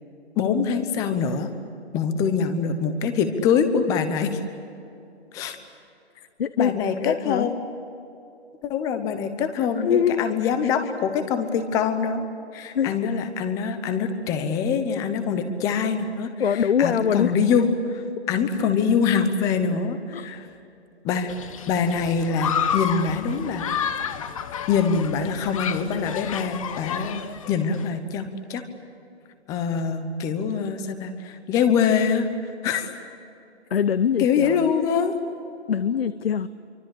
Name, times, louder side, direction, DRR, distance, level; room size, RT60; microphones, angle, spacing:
voice 1, 0.4-1.5 1.9-4.4 5.3-5.6 6.6-7.6 8.6-12.3 12.5-20.5 21.0-21.4 21.7-23.7 24.7-27.2 27.5-28.6 29.5-32.3 32.6-32.9 34.2-35.1, left 6 dB, 10° left, 9 dB, 1.0 m, -24 dB
voice 2, 6.4-6.7 7.0-7.5 9.8-10.2 10.6-10.7 12.7-12.9 16.4-17.3 20.1-20.3 33.7-34.7 35.7-36.5, left 8 dB, 60° left, 15 dB, 0.9 m, -23 dB
Human group actions, 21.3-27.9, left 8 dB, 30° left, 1.2 m, -30 dB
27.0 x 24.5 x 8.5 m, 2.7 s
hypercardioid pair, 155°, 34 cm